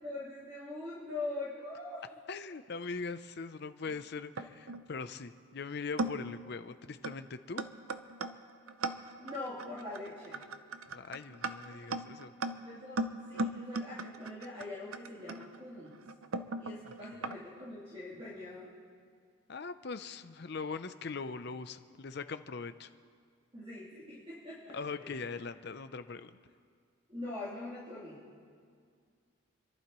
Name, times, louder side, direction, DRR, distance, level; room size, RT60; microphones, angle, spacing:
voice 1, 0.0-2.1 9.2-10.4 12.4-16.0 16.6-18.7 23.5-25.3 27.1-28.2, left 2 dB, 30° right, -11 dB, 3.3 m, -43 dB
voice 2, 2.3-7.6 10.8-12.3 17.2-17.3 19.5-22.9 24.7-26.4, left 4 dB, 50° left, 11 dB, 0.6 m, -41 dB
sound 1, 3.9-4.8 5.5-5.6 6.0-6.4 7.0-7.2 7.6-17.4, right 2 dB, 85° right, 0.7 m, -38 dB
29.5 x 11.5 x 3.1 m, 2.2 s
head